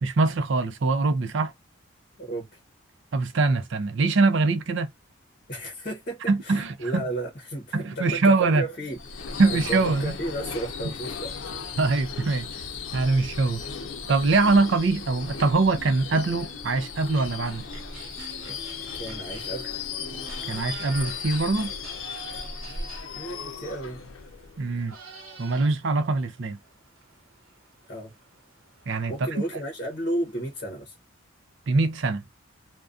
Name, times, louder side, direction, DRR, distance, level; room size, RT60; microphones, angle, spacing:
voice 1, 0.0-1.5 3.1-4.9 6.3-7.0 7.7-8.6 9.4-10.2 11.8-12.5 12.9-13.6 14.1-17.7 20.5-21.7 24.6-25.0 25.4-26.6 28.9-29.1 31.7-32.2, right 3 dB, 65° right, 0.5 m, -23 dB
voice 2, 2.2-2.6 5.5-11.6 18.8-19.7 23.1-24.0 27.9-28.1 29.1-31.0, right 1 dB, 40° left, 0.8 m, -33 dB
Subway metro underground / Screech, 8.9-24.9, left 5 dB, 80° left, 0.6 m, -36 dB
sound 1, 15.3-20.4, left 1 dB, 10° left, 0.6 m, -48 dB
sound 2, 17.1-30.6, right 4 dB, 85° right, 0.9 m, -48 dB
2.4 x 2.2 x 2.4 m
head